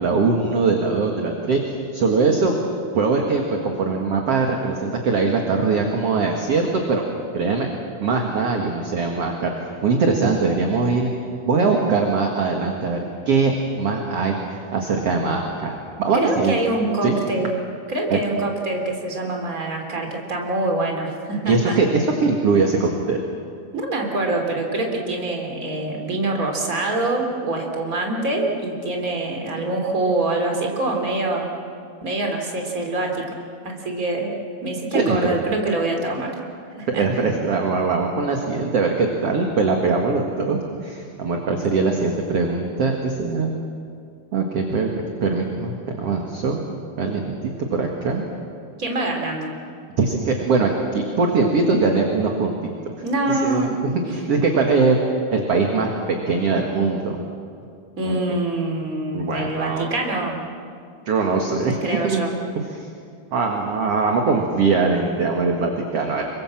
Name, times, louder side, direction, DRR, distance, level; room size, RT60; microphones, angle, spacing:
voice 1, 0.0-1.6 1.9-2.6 2.9-7.0 7.3-7.7 8.0-11.1 11.5-13.5 13.8-16.5 17.0-17.2 18.1-18.2 21.5-23.2 34.9-35.3 36.9-43.6 44.3-44.9 45.2-46.6 47.0-48.2 50.0-52.7 53.3-53.7 54.1-55.0 55.3-57.2 58.0-58.2 59.1-59.9 61.1-61.8 62.0-62.2 62.6-62.9 63.3-66.2, right 4 dB, 45° right, 2 dB, 2.3 m, -21 dB
voice 2, 16.1-17.5 17.9-21.8 23.7-31.5 32.0-33.3 33.6-34.3 34.6-36.3 36.8-37.0 48.8-49.5 53.0-53.7 58.0-60.4 61.8-62.3, right 2 dB, 20° right, 2 dB, 3.3 m, -25 dB
27.0 x 24.0 x 7.5 m, 2.4 s
omnidirectional pair, 4.6 m